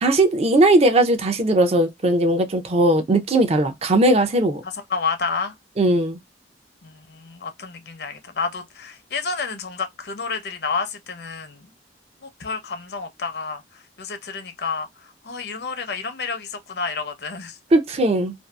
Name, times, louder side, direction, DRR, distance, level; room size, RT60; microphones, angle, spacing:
voice 1, 0.0-4.6 5.8-6.2 17.7-18.3, right 1 dB, 35° right, 0.5 m, -18 dB
voice 2, 4.6-5.5 6.8-11.7 12.2-13.6 14.0-14.9 15.2-17.6, left 5 dB, 65° left, 0.7 m, -30 dB
2.6 x 2.3 x 2.2 m
head